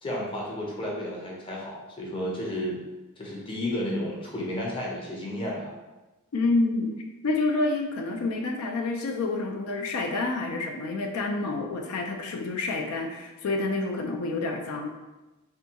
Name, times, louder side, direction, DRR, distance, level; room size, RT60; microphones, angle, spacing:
voice 1, 0.0-2.8 3.2-5.7, left 1 dB, 25° left, -3 dB, 0.5 m, -32 dB
voice 2, 6.3-6.9 7.2-14.9, left 3 dB, 85° left, 2 dB, 0.4 m, -28 dB
3.4 x 2.3 x 2.8 m, 1.1 s
head